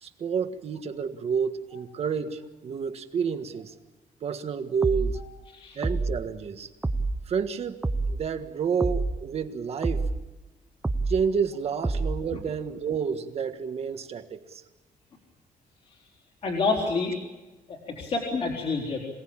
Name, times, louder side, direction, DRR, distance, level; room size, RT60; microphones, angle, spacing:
voice 1, 0.0-3.7 4.2-5.2 5.8-6.7 7.3-10.1 11.1-14.6, right 6 dB, 45° right, 8 dB, 1.6 m, -30 dB
sound 1, 4.8-5.2 5.8-6.2 6.8-7.2 7.8-8.2 8.8-9.2 9.8-10.2 10.8-11.2 11.8-12.2, right 2 dB, 10° right, 0.7 m, -27 dB
voice 2, 16.4-17.1 17.7-19.0, left 3 dB, 45° left, -2 dB, 4.0 m, -28 dB
27.0 x 18.0 x 8.9 m, 1.1 s
cardioid pair, 175°, 15 cm